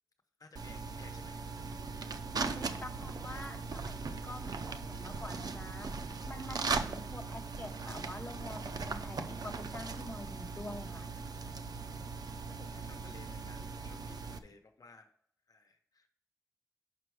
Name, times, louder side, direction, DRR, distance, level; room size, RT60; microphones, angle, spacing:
voice 1, 0.4-1.4 11.7-15.1 15.5-16.1, left 3 dB, 70° left, 6 dB, 0.9 m, -58 dB
sound 1, 0.6-14.4, right 4 dB, 90° right, 0.6 m, -39 dB
voice 2, 2.3-11.1, left 1 dB, 25° left, 2 dB, 1.2 m, -46 dB
6.8 x 5.9 x 4.8 m, 0.66 s
wide cardioid pair, 95°, 6 cm